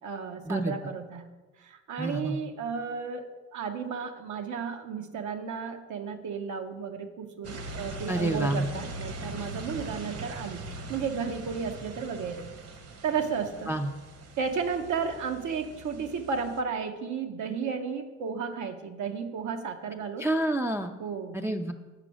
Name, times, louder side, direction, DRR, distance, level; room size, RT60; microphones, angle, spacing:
voice 1, 0.0-1.3 1.6-12.5 13.0-13.7 14.4-20.3 21.0-21.4, right 6 dB, 70° right, 5 dB, 0.8 m, -33 dB
voice 2, 2.0-2.4 8.1-8.7 13.7-13.9 20.2-20.9 21.3-21.7, right 1 dB, 10° right, 2 dB, 0.4 m, -28 dB
sound 1, 7.4-16.6, right 2 dB, 55° right, 1.1 m, -41 dB
6.8 x 5.0 x 6.2 m, 1.2 s
cardioid pair, 90°, 30 cm